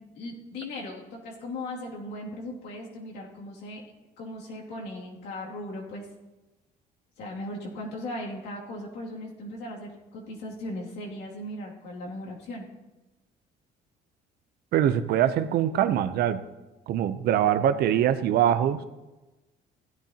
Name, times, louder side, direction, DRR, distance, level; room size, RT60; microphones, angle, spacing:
voice 1, 0.0-3.8 4.2-6.1 7.2-12.7, left 1 dB, 80° left, -2 dB, 2.5 m, -38 dB
voice 2, 14.7-16.4 16.9-18.8, right 10 dB, 70° right, 11 dB, 0.7 m, -23 dB
16.0 x 10.5 x 2.9 m, 1.1 s
cardioid pair, 110°, 17 cm